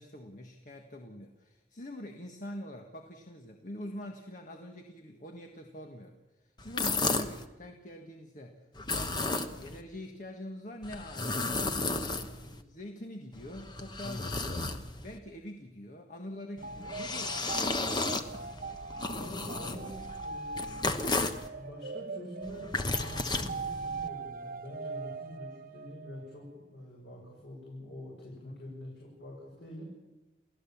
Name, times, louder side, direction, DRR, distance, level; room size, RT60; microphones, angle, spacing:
voice 1, 0.0-8.6 8.9-17.8 28.3-28.6, left 1 dB, 45° left, 4 dB, 1.6 m, -45 dB
sound 1, 6.6-7.4 8.7-9.8 10.8-12.6 13.3-15.2 16.6-21.5 22.4-24.1, left 3 dB, 25° left, 1.1 m, -34 dB
sound 2, 16.6-26.4, right 4 dB, 50° right, 0.8 m, -41 dB
voice 2, 19.1-20.9 21.5-29.8, left 1 dB, 90° left, -4 dB, 6.6 m, -46 dB
29.0 x 16.5 x 7.3 m, 1.1 s
head